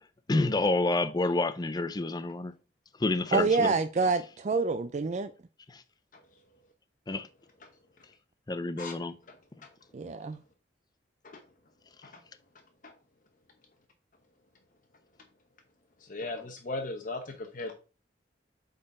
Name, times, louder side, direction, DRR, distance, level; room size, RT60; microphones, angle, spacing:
voice 1, 0.3-2.5 3.0-3.7 5.7-5.8 7.1-7.3 8.5-9.2, left 2 dB, 25° left, 0.5 m, -28 dB
voice 2, 3.3-5.3 9.9-10.4, right 4 dB, 40° right, 0.4 m, -27 dB
voice 3, 16.0-17.7, left 2 dB, 50° left, 0.8 m, -38 dB
8.0 x 4.0 x 3.7 m
head